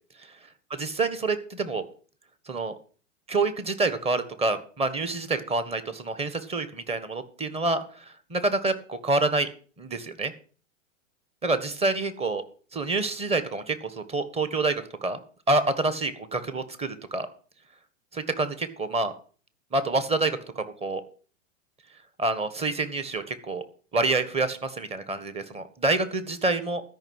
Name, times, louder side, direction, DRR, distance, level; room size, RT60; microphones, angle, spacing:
voice 1, 0.8-1.8 2.5-2.7 3.3-9.5 9.8-10.3 11.4-12.4 12.7-15.2 15.5-17.3 18.1-19.1 19.7-21.0 22.2-23.6 23.9-26.8, right 3 dB, 15° right, 11 dB, 1.5 m, -27 dB
13.0 x 5.8 x 7.9 m, 0.42 s
hypercardioid pair, 115°, 38 cm